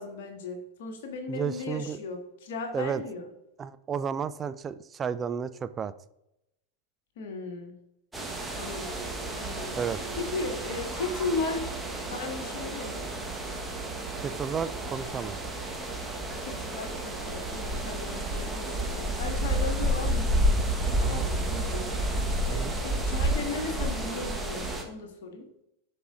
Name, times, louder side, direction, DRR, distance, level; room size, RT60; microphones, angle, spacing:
voice 1, 0.0-3.3 7.2-7.7 8.5-9.0 9.3-9.8 10.1-11.7 12.1-13.0 16.4-20.3 21.0-21.9 22.4-25.5, left 3 dB, 55° left, 3 dB, 1.6 m, -36 dB
voice 2, 1.3-2.0 2.7-3.0 3.6-5.9 9.8-10.0 14.2-15.4 21.0-21.3 22.5-22.7, right 7 dB, 20° right, 13 dB, 0.4 m, -32 dB
sound 1, 8.1-24.8, right 1 dB, 5° right, 1.1 m, -30 dB
13.0 x 4.8 x 2.4 m, 0.83 s
figure-of-eight pair, 90°, 0 cm